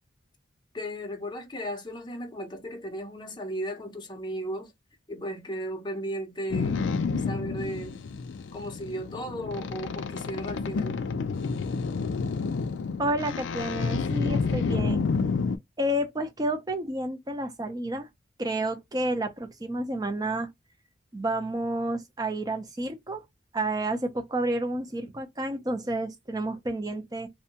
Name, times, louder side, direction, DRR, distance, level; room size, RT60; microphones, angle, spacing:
voice 1, 0.7-4.7 5.1-6.8 7.3-8.0 8.5-11.0, equal, 25° left, 0.6 m, -35 dB
Boat Water vehicle, 6.5-15.6, left 4 dB, 80° left, 0.4 m, -29 dB
voice 2, 13.0-15.1 15.8-18.1 18.4-20.5 21.1-23.2 23.5-27.3, right 1 dB, 20° right, 0.5 m, -30 dB
2.6 x 2.1 x 2.8 m
head